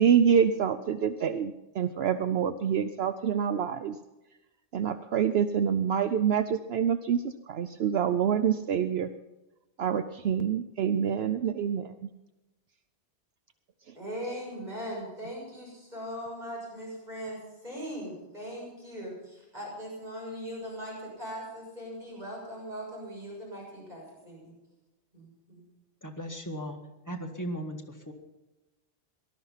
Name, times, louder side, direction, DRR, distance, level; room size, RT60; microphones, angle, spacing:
voice 1, 0.0-4.0 4.7-9.1 9.8-11.9, right 8 dB, 65° right, 11 dB, 0.9 m, -26 dB
voice 2, 13.9-24.5 25.1-25.6, equal, 40° right, -4 dB, 6.7 m, -40 dB
voice 3, 26.0-26.8 27.1-28.1, equal, 15° left, 2 dB, 1.8 m, -37 dB
19.0 x 12.5 x 5.7 m, 1.0 s
omnidirectional pair, 1.1 m